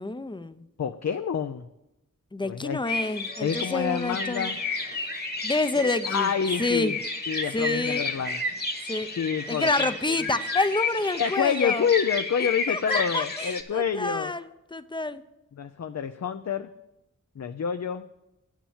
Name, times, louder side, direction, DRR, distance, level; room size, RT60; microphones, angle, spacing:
voice 1, 0.0-0.6 2.3-4.5 5.4-6.3 6.6-6.9 7.5-8.0 8.9-9.1 9.5-11.9 12.7-15.2, left 3 dB, 15° left, 12 dB, 0.6 m, -28 dB
voice 2, 0.8-1.7 2.4-2.8 3.4-4.6 5.8-7.0 7.3-8.4 9.2-9.7 10.1-10.2 11.1-14.3 15.6-16.7 17.4-18.1, left 7 dB, 60° left, 8 dB, 0.5 m, -28 dB
sound 1, 2.9-13.6, left 2 dB, 30° left, 1.4 m, -31 dB
9.0 x 7.3 x 7.2 m, 0.89 s
wide cardioid pair, 50°, 31 cm